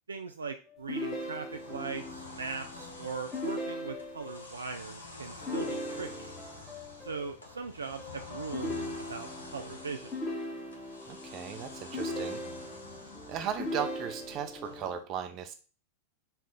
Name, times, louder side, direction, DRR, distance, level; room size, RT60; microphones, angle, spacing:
voice 1, 0.1-6.3 7.0-10.1, right 5 dB, 80° right, 6 dB, 0.3 m, -40 dB
sound 1, 0.6-15.0, left 3 dB, 5° left, 1.0 m, -49 dB
sound 2, 0.9-1.9 3.3-4.4 5.5-6.5 8.5-9.5 10.1-11.1 11.9-13.0 13.6-14.6, left 1 dB, 30° left, 1.2 m, -37 dB
sound 3, 1.5-14.9, left 2 dB, 85° left, 0.8 m, -48 dB
voice 2, 11.1-12.4 13.3-15.5, right 8 dB, 40° right, 7 dB, 0.7 m, -36 dB
4.6 x 2.4 x 3.6 m, 0.36 s
figure-of-eight pair, 90°, 0 cm